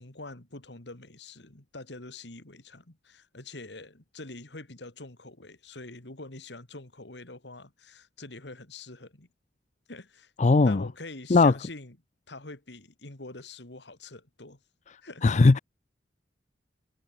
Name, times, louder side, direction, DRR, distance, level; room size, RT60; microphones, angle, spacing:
voice 1, 0.0-9.3 9.9-10.3 10.6-12.0 12.3-14.6 15.0-15.2, left 2 dB, 70° left, 2.8 m, -45 dB
voice 2, 10.4-10.8 11.3-11.5 15.2-15.6, left 3 dB, 40° left, 0.5 m, -18 dB
head